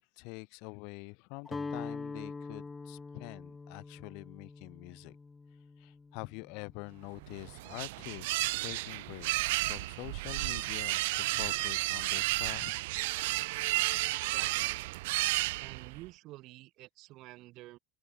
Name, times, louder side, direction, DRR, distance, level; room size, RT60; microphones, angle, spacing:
voice 1, 0.0-5.2 5.8-12.8, left 33 dB, 60° left, 4.1 m, -46 dB
Guitar, 1.5-7.5, left 4 dB, 15° left, 0.7 m, -44 dB
sound 1, 7.2-16.1, right 21 dB, 75° right, 0.4 m, -32 dB
voice 2, 14.3-15.1 15.6-17.8, right 18 dB, 50° right, 7.0 m, -50 dB
open air
supercardioid pair, 140°, 0 cm